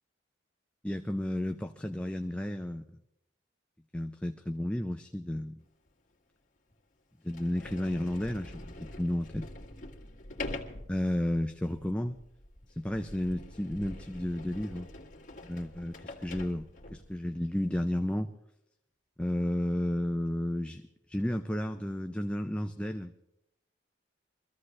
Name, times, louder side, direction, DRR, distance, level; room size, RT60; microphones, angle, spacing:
voice 1, 0.8-2.8 3.9-5.6 7.2-9.5 10.9-12.2 12.7-14.9 15.4-18.3 19.2-20.8 21.1-23.1, left 1 dB, 5° left, 6 dB, 0.4 m, -32 dB
Sliding door, 5.9-6.0 6.7-6.8 7.3-17.2, left 2 dB, 40° left, 1.9 m, -45 dB
23.5 x 14.5 x 3.2 m, 0.80 s
head